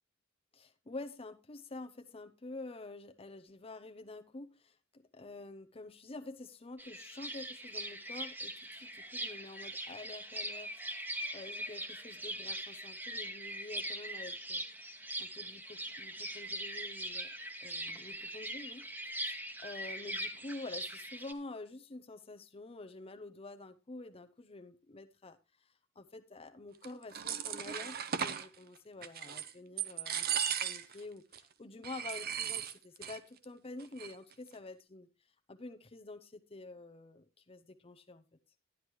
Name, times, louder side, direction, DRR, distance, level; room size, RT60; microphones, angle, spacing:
voice 1, 0.6-14.6 15.2-17.3 17.6-30.3 30.6-38.2, left 2 dB, 30° left, 0.7 m, -48 dB
sound 1, 6.8-21.3, right 1 dB, 10° right, 1.2 m, -41 dB
sound 2, 26.8-28.5 29.0-29.5 29.8-31.0 31.3-31.4 31.8-33.2 33.4-33.5 33.8-34.3, right 8 dB, 50° right, 0.8 m, -36 dB
11.5 x 11.0 x 3.1 m
head